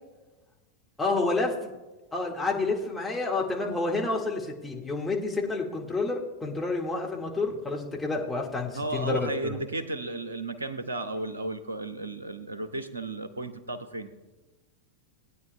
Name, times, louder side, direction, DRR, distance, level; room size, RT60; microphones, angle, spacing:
voice 1, 1.0-1.7 2.1-9.6, left 3 dB, 10° left, -2 dB, 1.8 m, -29 dB
voice 2, 8.7-14.1, right 2 dB, 75° right, 11 dB, 0.8 m, -34 dB
19.0 x 9.5 x 2.3 m, 1.2 s
figure-of-eight pair, 90°, 0 cm